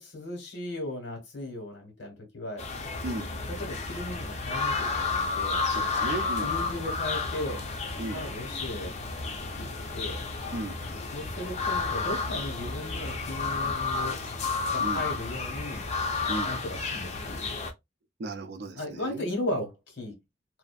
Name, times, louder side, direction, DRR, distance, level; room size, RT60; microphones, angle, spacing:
voice 1, 0.0-2.7 3.4-5.6 6.4-7.6 8.1-8.9 9.6-9.7 9.9-10.2 11.1-14.2 14.7-15.8 16.4-17.5 18.7-20.2, left 1 dB, 85° left, 1.3 m, -36 dB
sound 1, 2.6-17.7, left 4 dB, 40° left, 0.5 m, -31 dB
voice 2, 5.7-6.5 8.0-8.2 10.5-10.8 14.8-15.0 16.3-16.5 18.2-19.3, right 2 dB, 65° right, 0.4 m, -35 dB
2.6 x 2.4 x 2.3 m
head